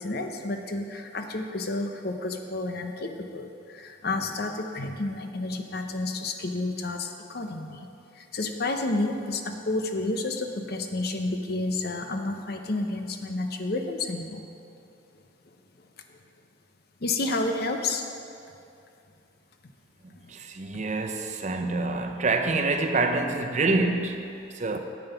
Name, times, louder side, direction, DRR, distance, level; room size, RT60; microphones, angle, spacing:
voice 1, 0.0-7.9 8.1-14.5 15.8-16.2 17.0-18.0 20.1-20.3, left 2 dB, 55° left, 5 dB, 0.7 m, -30 dB
voice 2, 20.0-24.8, right 3 dB, 40° right, 5 dB, 0.6 m, -27 dB
9.0 x 7.8 x 5.6 m, 2.6 s
head